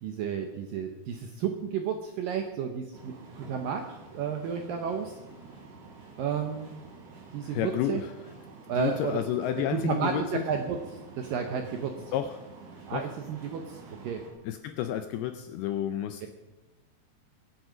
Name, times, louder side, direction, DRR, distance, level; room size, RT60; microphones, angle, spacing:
voice 1, 0.0-5.1 6.2-6.7 7.3-8.0 8.7-9.2 9.7-10.8 11.2-11.9 12.9-14.2 16.2-16.3, right 7 dB, 75° right, 4 dB, 2.0 m, -32 dB
sound 1, 2.9-14.3, right 3 dB, 60° right, 4.4 m, -49 dB
voice 2, 7.4-8.1 8.7-10.4 12.1-12.4 12.9-13.0 14.4-16.3, left 11 dB, 80° left, 8 dB, 2.3 m, -30 dB
23.5 x 8.0 x 5.1 m, 1.1 s
omnidirectional pair, 5.1 m